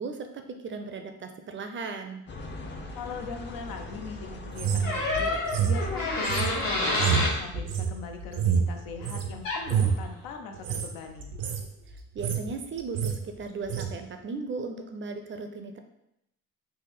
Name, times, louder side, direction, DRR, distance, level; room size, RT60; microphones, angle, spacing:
voice 1, 0.0-2.2 12.1-15.8, right 4 dB, 35° right, 6 dB, 0.4 m, -36 dB
sound 1, 2.3-7.4, left 1 dB, 35° left, 0.5 m, -42 dB
voice 2, 2.9-11.3, left 6 dB, 85° left, 5 dB, 0.6 m, -40 dB
sound 2, 4.5-9.3 9.6-10.0 10.5-10.9 11.2-11.7 12.0-12.5 12.8-13.2 13.7-13.9, right 7 dB, 85° right, 0.5 m, -28 dB
sound 3, 4.8-7.4 9.4-9.7, left 2 dB, 70° left, 1.1 m, -28 dB
3.3 x 2.1 x 3.5 m, 0.81 s
cardioid pair, 75°, 34 cm